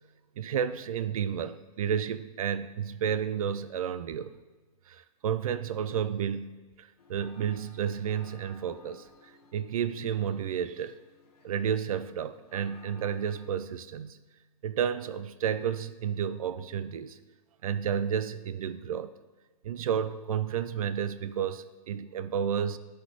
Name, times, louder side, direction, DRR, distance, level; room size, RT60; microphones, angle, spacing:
voice 1, 0.4-4.4 4.9-9.1 9.5-11.0 11.4-14.2 14.6-17.2 17.6-19.1 19.6-22.8, right 8 dB, 65° right, 13 dB, 0.4 m, -31 dB
sound 1, 7.0-13.5, left 4 dB, 85° left, 1.1 m, -58 dB
12.0 x 4.1 x 3.0 m, 1.2 s
hypercardioid pair, 170°, 19 cm